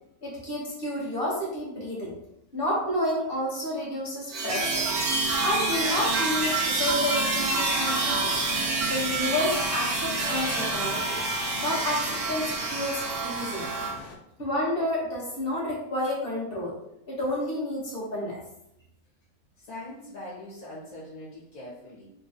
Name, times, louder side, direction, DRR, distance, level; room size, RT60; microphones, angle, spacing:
voice 1, 0.2-2.2 2.5-4.9 5.4-8.3 8.8-11.2 11.6-13.7 14.4-16.8 17.1-18.4, left 1 dB, 40° left, -5 dB, 1.2 m, -30 dB
sound 1, 4.3-13.9, right 3 dB, 80° right, 1.2 m, -27 dB
sound 2, 4.5-14.2, left 3 dB, 80° left, 1.1 m, -43 dB
sound 3, 4.6-10.9, equal, 45° right, 0.6 m, -40 dB
voice 2, 19.6-22.0, left 1 dB, 65° left, -7 dB, 1.5 m, -42 dB
3.3 x 2.9 x 2.6 m, 0.81 s
omnidirectional pair, 1.6 m